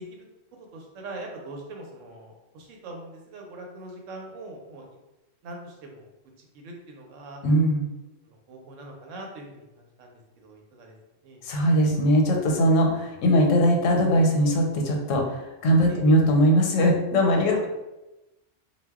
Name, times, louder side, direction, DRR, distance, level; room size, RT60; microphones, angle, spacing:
voice 1, 0.7-4.9 5.4-6.1 6.4-7.4 8.2-11.0 11.2-11.4 15.9-16.1, right 2 dB, 90° right, 1 dB, 1.0 m, -42 dB
voice 2, 7.4-7.9 11.4-17.7, equal, 85° left, 1 dB, 1.0 m, -20 dB
2.2 x 2.1 x 3.4 m, 1.0 s
omnidirectional pair, 1.3 m